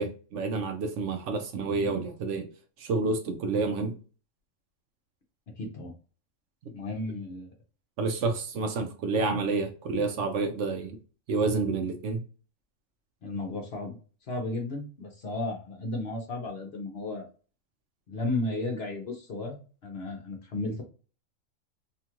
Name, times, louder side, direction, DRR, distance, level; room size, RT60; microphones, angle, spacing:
voice 1, 0.0-2.5 2.8-4.0 8.0-11.0 11.3-12.2, right 3 dB, 70° right, 0.8 m, -29 dB
voice 2, 5.6-5.9 6.7-7.5 13.2-14.0 14.3-17.2 18.1-20.8, left 2 dB, 55° left, 0.8 m, -34 dB
2.8 x 2.3 x 2.8 m
omnidirectional pair, 1.4 m